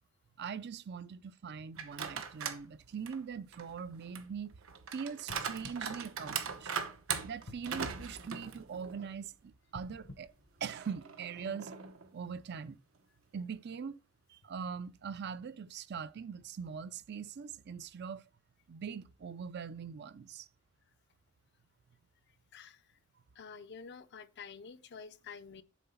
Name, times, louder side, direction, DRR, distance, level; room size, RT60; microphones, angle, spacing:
voice 1, 0.4-4.6 4.9-6.7 7.2-10.3 10.6-11.7 12.1-12.8 13.3-14.0 14.3-18.2 18.7-20.5, right 6 dB, 55° right, 0.4 m, -42 dB
sound 1, 1.8-2.7 3.1-9.2 9.5-9.6 10.6-12.1, right 6 dB, 85° right, 0.9 m, -40 dB
sound 2, 5.3-6.9 7.4-9.0 9.6-11.3 11.9-12.0, left 2 dB, 75° left, 1.2 m, -53 dB
voice 2, 22.5-23.0 23.4-25.6, left 5 dB, 55° left, 0.6 m, -49 dB
7.2 x 3.9 x 5.6 m
head